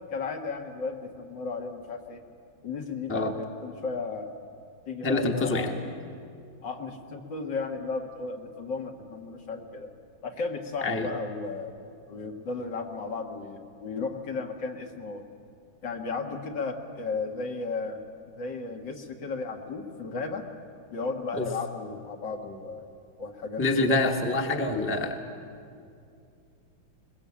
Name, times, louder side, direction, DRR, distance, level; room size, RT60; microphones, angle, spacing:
voice 1, 0.1-2.2 2.6-4.3 4.9-5.9 6.6-9.9 10.2-11.7 12.1-15.2 15.8-18.0 18.3-20.4 20.9-22.9 23.2-24.0, left 4 dB, 65° left, 3 dB, 2.3 m, -34 dB
voice 2, 5.0-5.7 10.8-11.1 21.3-21.5 23.6-25.2, left 2 dB, 5° left, 3 dB, 1.2 m, -26 dB
21.5 x 21.0 x 8.6 m, 2.4 s
omnidirectional pair, 2.1 m